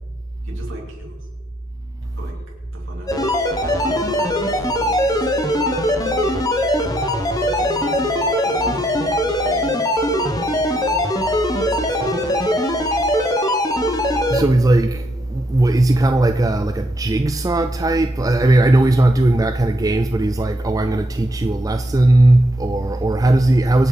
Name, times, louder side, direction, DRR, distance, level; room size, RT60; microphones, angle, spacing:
voice 1, 0.4-1.3 2.0-2.4 2.7-3.3 3.6-6.3 6.7-13.7, equal, 60° right, 3.6 m, -37 dB
sound 1, 3.1-14.4, left 1 dB, 15° left, 1.1 m, -20 dB
voice 2, 14.3-23.9, right 2 dB, 15° right, 0.4 m, -17 dB
24.0 x 8.3 x 4.0 m
head